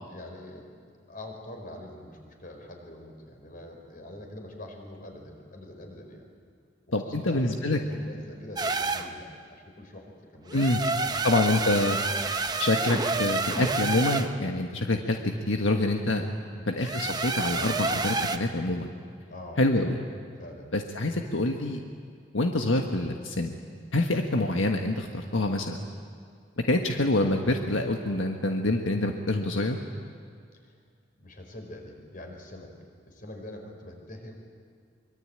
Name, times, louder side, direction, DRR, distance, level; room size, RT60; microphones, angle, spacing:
voice 1, 0.1-0.7 1.1-6.3 7.0-11.2 16.5-16.8 19.3-20.0 20.4-20.7 30.6-30.8 31.2-32.7 33.1-34.3, left 1 dB, 45° left, 3 dB, 4.8 m, -44 dB
voice 2, 6.9-7.8 10.5-10.8 11.2-12.0 12.6-15.2 15.5-16.2 16.7-18.9 19.6-19.9 20.7-21.8 22.3-23.5 23.9-25.8 26.7-29.8, left 2 dB, 85° left, 3 dB, 1.5 m, -26 dB
sound 1, 8.6-9.1 10.5-14.3 16.8-18.4, right 3 dB, 20° right, 1.0 m, -29 dB
24.5 x 24.0 x 8.9 m, 2.2 s
head